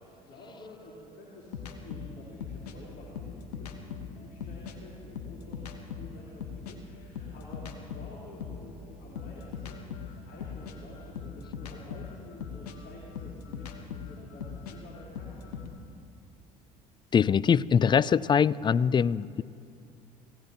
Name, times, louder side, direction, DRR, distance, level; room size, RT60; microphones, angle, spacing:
voice 1, 0.0-15.5, left 2 dB, 50° left, -5 dB, 4.0 m, -50 dB
sound 1, 1.5-4.8 5.1-8.7 9.1-15.7, left 6 dB, 75° left, 1.3 m, -40 dB
voice 2, 17.1-19.4, left 7 dB, 25° left, 21 dB, 0.4 m, -23 dB
28.0 x 16.5 x 3.0 m, 2.4 s
figure-of-eight pair, 60°, 20 cm